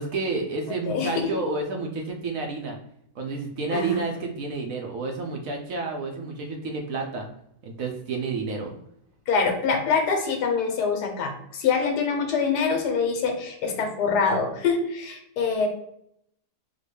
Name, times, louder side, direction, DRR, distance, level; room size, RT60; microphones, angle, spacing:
voice 1, 0.0-2.8 3.2-7.3 7.6-8.7, right 3 dB, 70° right, 2 dB, 0.9 m, -30 dB
voice 2, 9.3-15.7, left 5 dB, 85° left, 3 dB, 1.3 m, -25 dB
3.8 x 2.2 x 3.2 m, 0.75 s
omnidirectional pair, 1.7 m